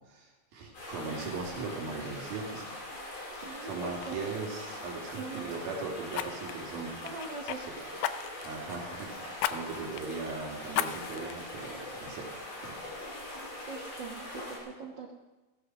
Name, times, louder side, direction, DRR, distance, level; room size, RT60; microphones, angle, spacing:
voice 1, 0.1-2.7 3.6-6.9 8.4-12.2, right 4 dB, 85° right, -1 dB, 4.5 m, -39 dB
sound 1, 0.7-14.6, left 1 dB, 65° left, 6.8 m, -42 dB
Fire, 3.4-3.6 4.0-4.2 6.1-7.6 8.0-8.6 9.4-9.6 10.0-10.1 10.7-11.3 11.9-12.0, left 12 dB, 80° left, 1.7 m, -33 dB
voice 2, 3.4-4.4 5.2-5.5 7.0-7.7 7.9-8.0 13.7-15.2, right 4 dB, 65° right, 0 dB, 1.1 m, -42 dB
15.5 x 14.5 x 6.2 m, 1.1 s
omnidirectional pair, 4.1 m